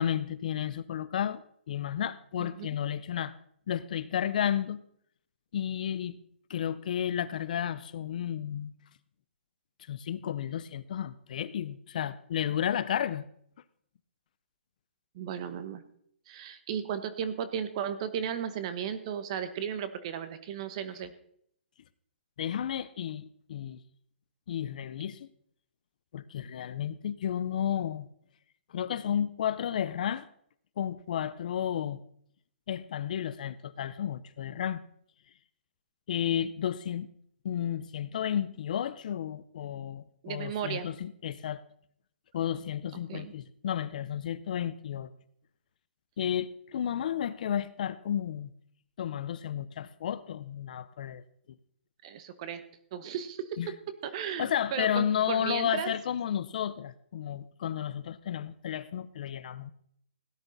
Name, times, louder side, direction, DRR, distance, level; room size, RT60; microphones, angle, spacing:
voice 1, 0.0-1.4 1.7-3.3 3.7-4.8 5.5-6.2 6.5-8.7 9.9-13.3 22.4-23.8 24.5-25.3 26.1-28.1 28.7-30.3 30.8-32.0 32.7-34.8 36.1-37.1 37.4-41.6 42.3-45.1 46.2-48.5 49.0-51.2 53.6-53.7 54.4-59.7, left 9 dB, 45° left, 15 dB, 0.6 m, -32 dB
voice 2, 2.4-2.7 15.1-15.8 16.3-21.1 40.2-40.9 43.1-43.3 52.0-52.6 52.9-53.7 54.0-55.9, right 8 dB, 30° right, 12 dB, 1.1 m, -35 dB
17.0 x 10.5 x 4.0 m, 0.67 s
hypercardioid pair, 165°, 6 cm